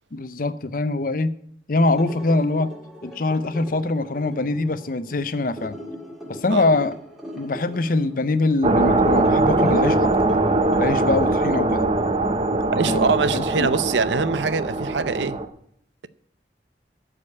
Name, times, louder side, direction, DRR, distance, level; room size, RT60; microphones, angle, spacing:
voice 1, 0.1-1.3 1.7-2.7 3.0-5.8 6.3-6.9 7.4-10.3 10.8-11.9 12.8-13.7, left 2 dB, 50° left, 0.7 m, -23 dB
sound 1, 1.9-12.5, left 1 dB, ahead, 2.0 m, -41 dB
sound 2, 8.6-15.5, right 2 dB, 30° right, 0.7 m, -21 dB
voice 2, 12.7-15.4, right 5 dB, 85° right, 0.6 m, -23 dB
13.0 x 5.1 x 8.5 m
head